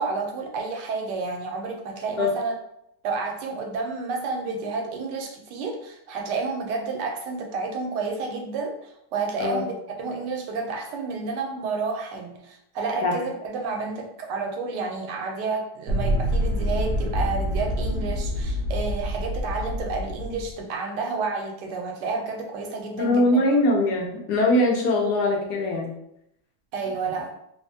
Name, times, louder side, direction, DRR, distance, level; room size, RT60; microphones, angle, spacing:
voice 1, 0.0-2.5 3.0-9.7 10.0-23.4 26.7-27.3, right 4 dB, 85° right, 3 dB, 1.2 m, -30 dB
sound 1, 15.9-20.5, equal, 60° right, 0.7 m, -26 dB
voice 2, 23.0-25.9, left 1 dB, 80° left, 0 dB, 1.2 m, -22 dB
3.3 x 2.1 x 2.6 m, 0.77 s
omnidirectional pair, 1.8 m